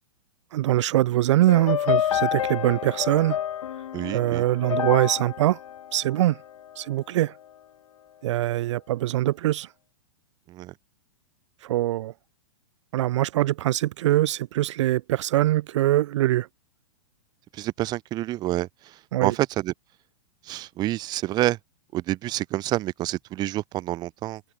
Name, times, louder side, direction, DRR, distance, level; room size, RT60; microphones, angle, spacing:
voice 1, 0.5-3.4 4.1-5.6 5.9-6.4 6.8-7.3 8.2-9.7 11.6-12.1 12.9-16.5 19.1-19.3, right 15 dB, 60° right, 0.5 m, -23 dB
sound 1, 1.5-6.8, left 10 dB, 85° left, 1.6 m, -29 dB
voice 2, 3.9-4.4 10.5-10.7 17.5-18.7 19.2-19.7 20.5-21.6 21.9-24.4, right 16 dB, 25° right, 1.1 m, -28 dB
supercardioid pair, 155°, 17 cm